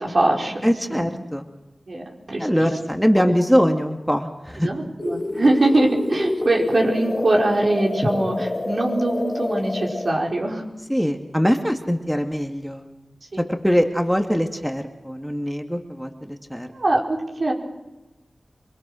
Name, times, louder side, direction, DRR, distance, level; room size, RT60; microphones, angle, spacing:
voice 1, 0.0-0.6 0.9-1.1 1.9-2.7 3.2-3.3 4.6-10.6 13.3-13.4 16.7-17.5, right 2 dB, 65° right, 0 dB, 5.0 m, -22 dB
voice 2, 0.6-1.5 2.4-4.7 10.9-12.9 13.4-16.7, equal, ahead, 4 dB, 2.3 m, -22 dB
sound 1, 5.0-10.1, left 2 dB, 45° left, 1.3 m, -28 dB
28.0 x 21.5 x 6.4 m, 1.0 s
cardioid pair, 40°, 0 cm